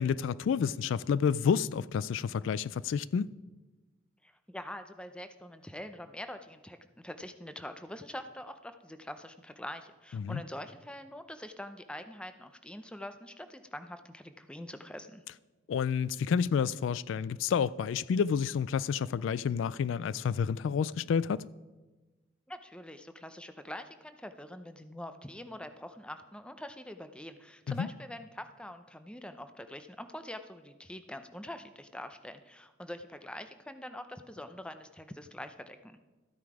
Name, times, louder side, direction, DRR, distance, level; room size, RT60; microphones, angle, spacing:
voice 1, 0.0-3.3 10.1-10.4 15.7-21.4 27.7-27.9, left 6 dB, 75° left, 0.3 m, -29 dB
voice 2, 4.2-15.2 22.5-36.0, left 1 dB, 5° left, 0.5 m, -44 dB
13.0 x 9.3 x 4.8 m
head